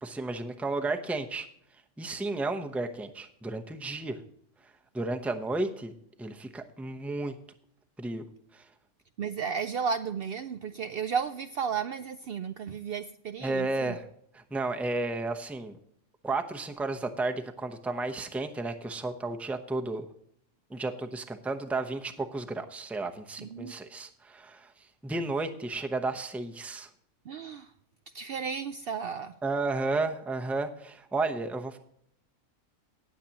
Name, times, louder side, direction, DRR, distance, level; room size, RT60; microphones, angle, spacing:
voice 1, 0.0-1.5 2.0-4.2 4.9-5.9 6.2-7.4 8.0-8.2 8.5-8.7 13.4-14.1 14.3-15.8 16.2-20.1 20.7-24.7 25.0-26.9 29.4-31.8, right 2 dB, ahead, 5 dB, 0.6 m, -32 dB
voice 2, 9.2-13.9 23.4-23.7 27.3-27.7 28.1-29.3, right 6 dB, 60° right, 9 dB, 0.6 m, -33 dB
18.5 x 7.5 x 2.9 m, 0.69 s
omnidirectional pair, 1.3 m